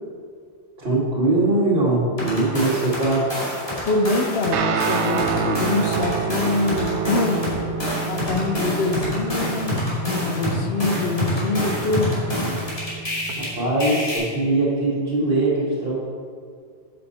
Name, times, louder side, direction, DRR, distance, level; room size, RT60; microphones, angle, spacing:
voice 1, 0.8-3.3 13.4-15.9, right 2 dB, 60° right, -6 dB, 2.4 m, -21 dB
sound 1, 2.2-4.5 4.8-13.5 13.8-14.2, left 1 dB, 30° left, 2.4 m, -27 dB
voice 2, 3.9-7.5 8.1-9.8 10.2-12.1, left 3 dB, 65° left, 4 dB, 0.9 m, -24 dB
Guitar, 4.5-13.3, right 6 dB, 85° right, 0.9 m, -28 dB
7.7 x 6.9 x 4.2 m, 2.1 s
omnidirectional pair, 1.1 m